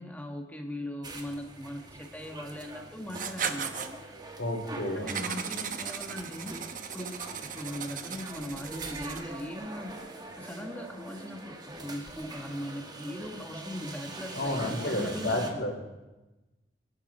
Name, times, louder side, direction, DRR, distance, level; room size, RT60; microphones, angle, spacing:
voice 1, 0.0-3.7 4.9-6.6 6.9-9.9 10.4-15.6, equal, 10° left, 3 dB, 1.6 m, -39 dB
sound 1, 1.0-15.5, right 2 dB, 20° right, 1.4 m, -43 dB
Writing, 3.1-3.9 5.1-9.4, right 7 dB, 45° right, 1.0 m, -37 dB
voice 2, 4.4-5.1 14.3-15.7, left 1 dB, 75° left, 1 dB, 3.8 m, -31 dB
26.0 x 12.0 x 4.4 m, 1.1 s
head